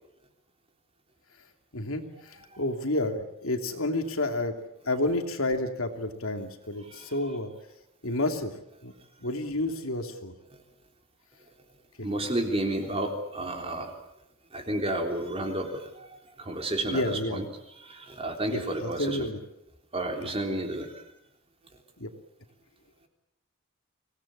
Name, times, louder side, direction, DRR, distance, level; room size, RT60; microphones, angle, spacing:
voice 1, 1.7-4.6 4.8-7.5 8.0-8.5 8.8-8.9 9.2-10.3 16.9-17.4 18.5-19.4 20.2-20.3 22.0-22.1, left 1 dB, 70° left, 5 dB, 2.8 m, -30 dB
voice 2, 12.0-13.9 14.5-17.5 17.8-19.3 19.9-20.9, right 1 dB, 25° right, 3 dB, 3.6 m, -31 dB
25.0 x 18.0 x 8.6 m, 0.83 s
head